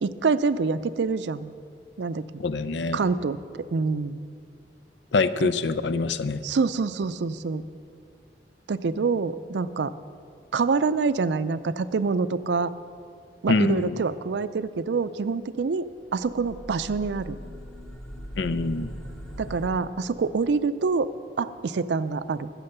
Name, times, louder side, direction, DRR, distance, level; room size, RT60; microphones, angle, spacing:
voice 1, 0.0-1.5 2.0-2.2 2.9-4.2 5.4-5.5 6.4-7.6 8.7-9.9 10.5-12.7 13.4-15.9 16.1-17.4 19.4-21.1 21.4-22.5, right 4 dB, 80° right, 14 dB, 0.4 m, -26 dB
voice 2, 2.4-3.0 5.1-6.4 13.5-14.0 18.4-18.9, left 3 dB, 85° left, 13 dB, 0.5 m, -25 dB
sound 1, 16.1-19.7, equal, 5° left, 0.7 m, -40 dB
15.0 x 6.2 x 6.7 m, 2.3 s
head